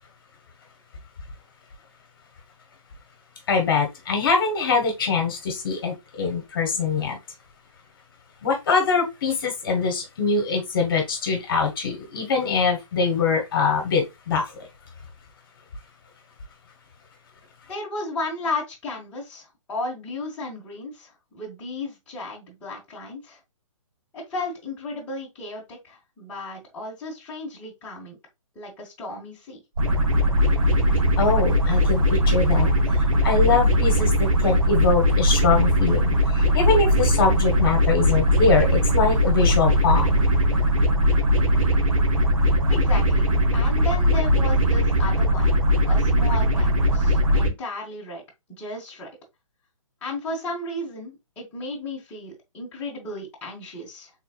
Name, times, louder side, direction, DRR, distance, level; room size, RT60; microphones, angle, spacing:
voice 1, 3.5-7.2 8.4-14.5 31.2-32.7 32.9-40.2, left 4 dB, 40° left, 1.2 m, -23 dB
voice 2, 17.7-23.4 24.1-28.2 28.5-29.6 42.7-45.5 45.9-48.2 48.6-49.1 50.0-54.1, left 2 dB, 10° left, 1.3 m, -34 dB
sound 1, 29.8-47.5, equal, 80° right, 1.3 m, -20 dB
4.4 x 3.6 x 2.4 m
hypercardioid pair, 165°, 17 cm